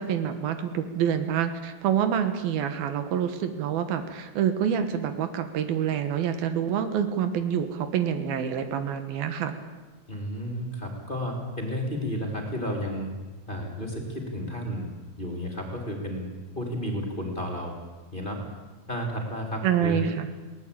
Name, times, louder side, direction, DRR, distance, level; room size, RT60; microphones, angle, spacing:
voice 1, 0.0-9.5 19.6-20.3, right 8 dB, 85° right, 8 dB, 3.3 m, -27 dB
voice 2, 10.1-13.1 13.5-14.9 15.2-16.3 16.5-17.7 18.1-18.4 18.9-20.0, equal, 15° left, 1 dB, 3.2 m, -32 dB
21.0 x 18.0 x 8.7 m, 1.2 s
omnidirectional pair, 4.2 m